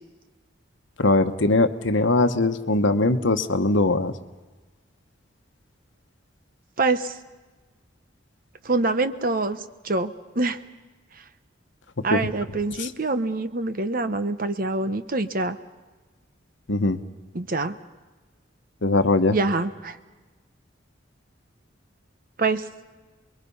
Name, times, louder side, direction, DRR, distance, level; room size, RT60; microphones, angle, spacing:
voice 1, 1.0-4.1 12.1-12.3 12.8-12.9 16.7-17.0 18.8-19.4, left 2 dB, 70° left, 9 dB, 1.1 m, -21 dB
voice 2, 6.8-7.2 8.6-10.6 11.2-11.3 12.0-15.6 17.3-17.8 19.3-20.0 22.4-22.7, right 3 dB, 45° right, 11 dB, 1.0 m, -25 dB
28.5 x 22.0 x 5.5 m, 1.3 s
head